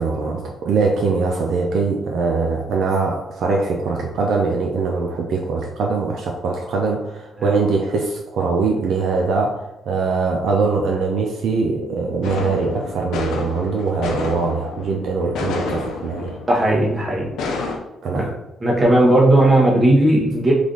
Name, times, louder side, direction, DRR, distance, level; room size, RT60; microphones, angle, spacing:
voice 1, 0.0-16.4 18.0-18.3, right 4 dB, 70° right, 1 dB, 0.5 m, -22 dB
sound 1, 12.2-17.8, left 4 dB, 85° left, 0.5 m, -30 dB
voice 2, 16.5-17.3 18.1-18.2 18.6-20.5, right 1 dB, 25° right, -2 dB, 1.1 m, -15 dB
3.2 x 2.5 x 3.8 m, 0.88 s
cardioid pair, 90°, 0 cm